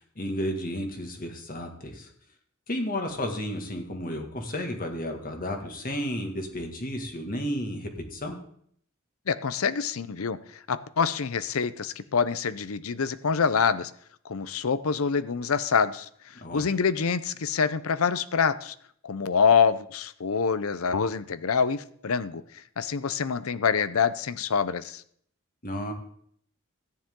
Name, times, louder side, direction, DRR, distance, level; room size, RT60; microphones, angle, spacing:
voice 1, 0.0-2.1 2.7-8.4 16.4-16.6 25.6-25.9, equal, 40° left, 3 dB, 1.9 m, -32 dB
voice 2, 9.3-10.4 10.7-13.9 14.2-16.1 16.5-18.7 19.0-25.0, left 6 dB, 80° left, 15 dB, 0.7 m, -26 dB
14.5 x 10.0 x 3.8 m, 0.63 s
head